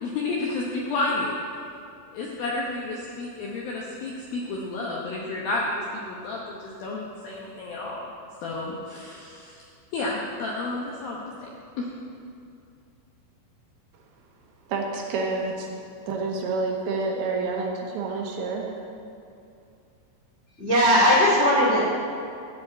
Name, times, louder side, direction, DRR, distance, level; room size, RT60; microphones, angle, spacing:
voice 1, 0.0-1.3 2.1-8.1 8.4-9.6 9.9-11.2 11.8-11.9, left 2 dB, 75° left, -3 dB, 2.2 m, -31 dB
voice 2, 14.7-15.7 16.0-18.7, right 3 dB, 75° right, 0 dB, 3.1 m, -28 dB
voice 3, 20.6-21.9, equal, 45° left, -6 dB, 0.8 m, -18 dB
13.5 x 5.1 x 8.8 m, 2.5 s
omnidirectional pair, 5.6 m